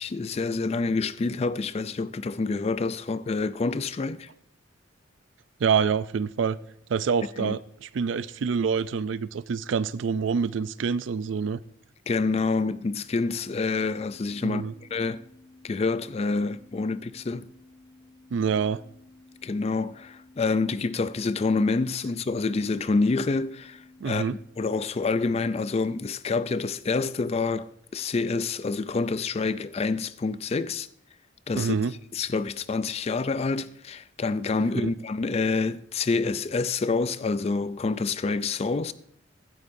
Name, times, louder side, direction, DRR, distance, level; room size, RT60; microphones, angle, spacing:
voice 1, 0.0-4.3 7.4-7.6 12.1-14.6 14.9-15.2 15.6-17.5 19.4-24.3 24.6-30.9 31.5-31.7 32.1-38.9, left 3 dB, 30° left, 0.4 m, -27 dB
voice 2, 5.6-6.6 6.9-11.6 14.4-14.7 18.3-18.8 24.0-24.3 31.6-31.9 34.7-34.9, right 6 dB, 70° right, 0.4 m, -26 dB
sound 1, 13.7-24.5, left 2 dB, 80° left, 1.6 m, -54 dB
15.5 x 11.0 x 2.6 m
head